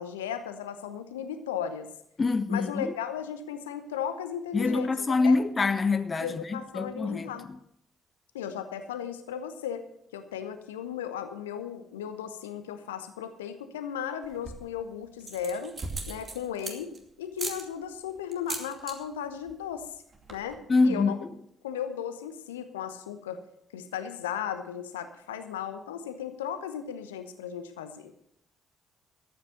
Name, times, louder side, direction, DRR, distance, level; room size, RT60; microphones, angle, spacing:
voice 1, 0.0-1.9 2.5-5.4 6.2-7.5 8.3-9.9 10.1-15.8 16.1-19.9 20.3-21.2 21.6-23.4 23.7-28.1, left 8 dB, 75° left, 1.0 m, -36 dB
voice 2, 2.2-2.9 4.5-7.3 20.7-21.1, left 3 dB, 30° left, 0.7 m, -25 dB
sound 1, 14.2-14.7 15.2-17.0 17.4-17.6 18.3-19.0 19.2-19.6 19.8-19.9 20.1-20.5, right 3 dB, 35° right, 2.4 m, -37 dB
14.5 x 8.7 x 6.6 m
figure-of-eight pair, 45°, 0 cm